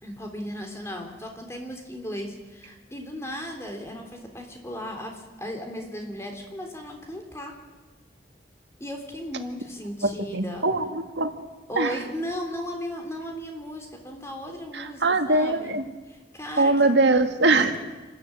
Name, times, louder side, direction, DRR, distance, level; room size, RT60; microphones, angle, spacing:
voice 1, 0.0-7.6 8.8-10.7 11.7-15.8 16.1-16.9 17.6-17.8, equal, 15° left, 3 dB, 3.4 m, -36 dB
voice 2, 10.0-11.3 11.8-12.0 14.7-15.8 16.6-17.7, right 2 dB, 85° right, 7 dB, 1.8 m, -22 dB
27.0 x 14.0 x 8.8 m, 1.3 s
head